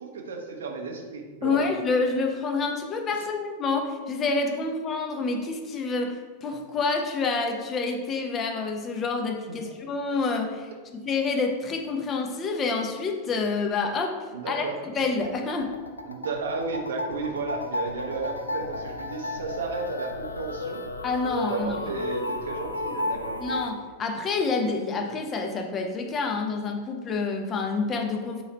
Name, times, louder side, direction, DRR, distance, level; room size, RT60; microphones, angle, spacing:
voice 1, 0.0-1.6 14.3-14.7 16.1-20.8 21.4-23.4, right 4 dB, 65° right, 2 dB, 0.6 m, -33 dB
voice 2, 1.4-15.7 21.0-21.8 23.4-28.4, left 4 dB, 25° left, 3 dB, 0.6 m, -28 dB
sound 1, 15.1-23.7, left 2 dB, 80° left, 0.4 m, -33 dB
3.8 x 2.9 x 4.2 m, 1.4 s
figure-of-eight pair, 90°, 0 cm